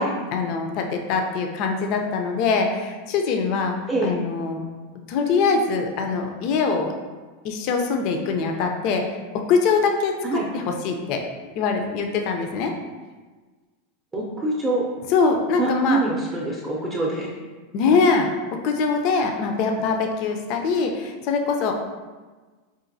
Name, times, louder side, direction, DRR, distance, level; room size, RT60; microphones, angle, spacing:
voice 1, 0.3-3.8 4.0-4.6 5.1-6.9 7.4-9.1 9.5-10.2 10.5-11.2 11.6-12.7 15.1-16.0 17.7-18.3 18.6-21.7, left 5 dB, 50° left, 4 dB, 0.4 m, -23 dB
voice 2, 14.1-14.9 15.6-17.3, right 2 dB, 15° right, -5 dB, 0.5 m, -25 dB
4.9 x 2.5 x 2.6 m, 1.3 s
supercardioid pair, 135°, 0 cm